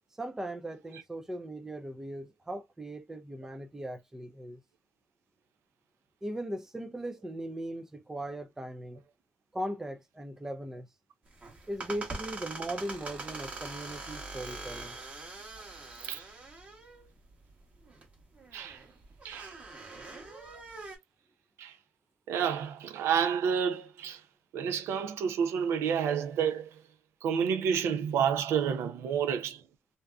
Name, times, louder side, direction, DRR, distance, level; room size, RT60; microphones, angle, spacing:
voice 1, 0.2-4.6 6.2-9.0 9.5-10.9 11.7-15.0, right 1 dB, 10° right, 0.4 m, -38 dB
sound 1, 11.3-21.0, right 3 dB, 30° right, 1.1 m, -43 dB
voice 2, 22.3-24.2 24.5-26.7 27.2-29.6, right 7 dB, 70° right, 0.5 m, -29 dB
2.6 x 2.3 x 2.3 m
cardioid pair, 105°, 5 cm